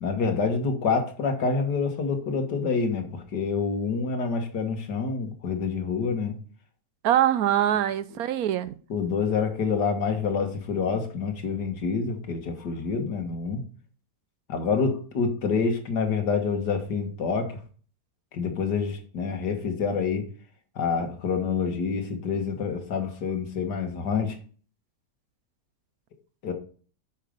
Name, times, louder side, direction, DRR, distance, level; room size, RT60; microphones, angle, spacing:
voice 1, 0.0-6.4 8.9-13.6 14.5-17.6 18.3-20.3 20.8-24.4 26.4-26.5, left 5 dB, 90° left, 2.1 m, -27 dB
voice 2, 7.0-8.8, right 11 dB, 70° right, 1.0 m, -23 dB
8.7 x 6.6 x 5.2 m
omnidirectional pair, 1.7 m